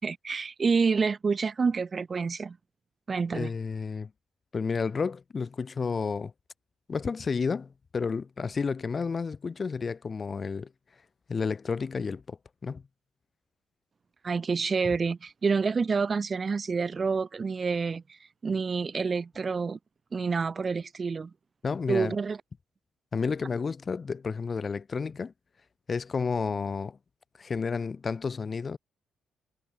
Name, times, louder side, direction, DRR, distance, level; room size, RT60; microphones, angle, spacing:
voice 1, 0.0-2.6 3.1-3.5 14.2-18.2 18.4-19.8 20.1-21.3 21.9-22.4, right 5 dB, 35° right, 4.2 m, -28 dB
voice 2, 3.3-4.1 4.5-6.3 6.9-10.7 11.3-12.4 12.6-12.8 21.6-22.2 23.1-25.3 25.9-27.0 27.4-28.8, left 5 dB, 35° left, 5.5 m, -31 dB
cardioid pair, 90°, 0 cm